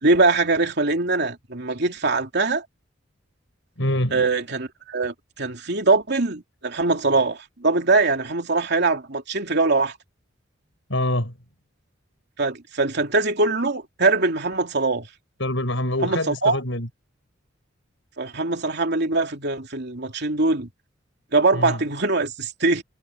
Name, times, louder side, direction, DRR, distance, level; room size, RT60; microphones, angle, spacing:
voice 1, 0.0-2.6 4.1-9.9 12.4-15.1 16.0-16.6 18.2-20.7 21.3-22.8, right 3 dB, 60° right, 3.1 m, -22 dB
voice 2, 3.8-4.2 10.9-11.3 15.4-16.9 21.5-21.8, left 1 dB, 70° left, 7.9 m, -25 dB
head